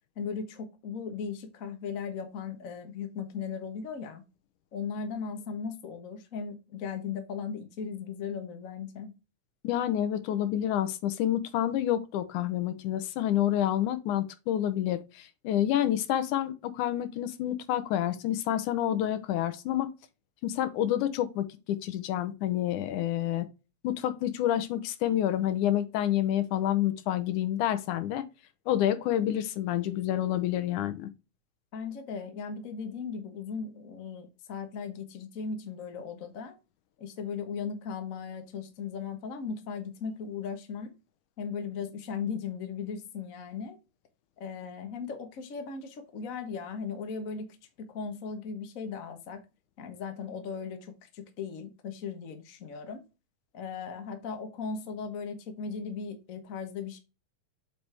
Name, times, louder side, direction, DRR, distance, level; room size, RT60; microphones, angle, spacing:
voice 1, 0.1-4.2 4.7-9.1 31.7-36.5 37.0-40.9 41.4-43.8 44.4-49.4 49.8-53.0 53.5-57.0, left 6 dB, 55° left, 0.9 m, -37 dB
voice 2, 9.6-19.9 20.4-23.5 23.8-28.2 28.7-31.1, left 11 dB, 75° left, 2.3 m, -28 dB
8.1 x 4.9 x 3.4 m
omnidirectional pair, 3.6 m